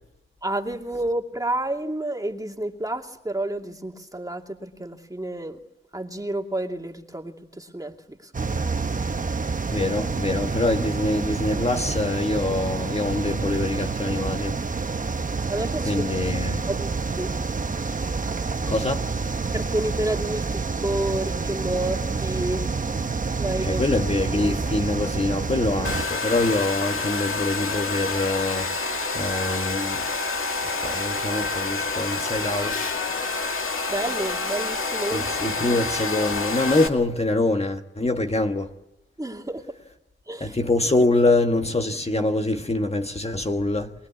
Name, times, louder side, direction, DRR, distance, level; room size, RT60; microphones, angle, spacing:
voice 1, 0.4-5.6 5.9-8.8 15.5-16.0 16.7-16.9 17.2-17.3 19.5-22.6 23.4-23.8 33.9-35.6 39.2-39.7 40.3-40.6, right 1 dB, 15° right, 2.5 m, -30 dB
sound 1, 8.3-26.0, right 4 dB, 40° right, 1.0 m, -28 dB
voice 2, 9.7-14.6 15.8-16.6 18.7-19.1 23.6-28.7 29.1-30.1 30.6-32.8 35.1-38.7 40.4-43.9, left 2 dB, 30° left, 1.5 m, -24 dB
Domestic sounds home sounds, 25.8-36.9, left 3 dB, 80° left, 2.3 m, -28 dB
23.0 x 22.5 x 8.4 m
wide cardioid pair, 80°, 21 cm